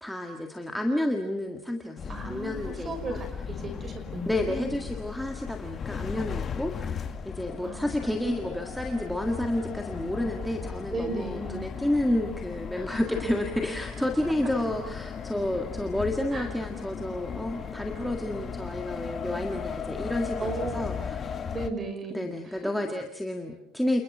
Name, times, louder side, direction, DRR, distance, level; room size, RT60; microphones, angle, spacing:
voice 1, 0.0-3.2 4.3-21.4 22.1-24.0, left 1 dB, ahead, 2 dB, 1.8 m, -30 dB
sound 1, 2.0-21.7, left 6 dB, 25° left, 1.8 m, -36 dB
voice 2, 2.1-4.8 7.6-8.5 10.9-11.7 12.7-13.1 16.3-16.5 20.4-20.8 21.5-22.9, right 2 dB, 20° right, 8 dB, 5.5 m, -36 dB
29.5 x 29.0 x 6.1 m, 0.78 s
cardioid pair, 180°, 0 cm